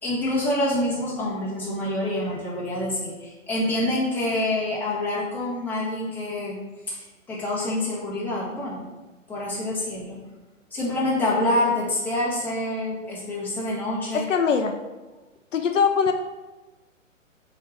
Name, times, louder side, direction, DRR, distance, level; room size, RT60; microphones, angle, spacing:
voice 1, 0.0-6.6 6.9-8.9 9.3-10.2 10.7-14.3, left 1 dB, 5° left, -8 dB, 1.5 m, -26 dB
voice 2, 14.1-14.7 15.5-16.1, left 6 dB, 70° left, 6 dB, 0.7 m, -21 dB
5.7 x 4.5 x 4.3 m, 1.2 s
hypercardioid pair, 140°, 40 cm